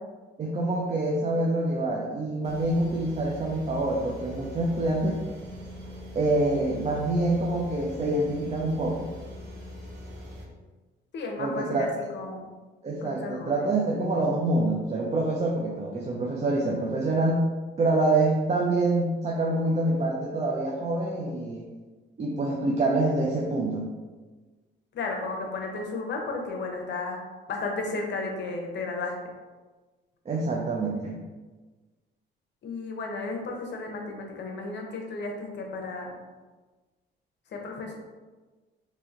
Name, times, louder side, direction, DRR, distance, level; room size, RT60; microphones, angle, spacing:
voice 1, 0.4-5.2 6.1-9.1 11.4-11.9 12.8-17.5 17.8-21.6 22.2-23.9 30.3-31.2, right 2 dB, 35° right, -2 dB, 0.5 m, -26 dB
sound 1, 2.4-10.4, equal, 60° right, 0.9 m, -42 dB
voice 2, 11.1-12.5 13.0-13.6 24.9-27.2 27.5-29.2 32.6-36.2 37.5-38.0, left 3 dB, 65° left, 1 dB, 0.8 m, -33 dB
3.1 x 2.9 x 3.7 m, 1.3 s
cardioid pair, 90°, 20 cm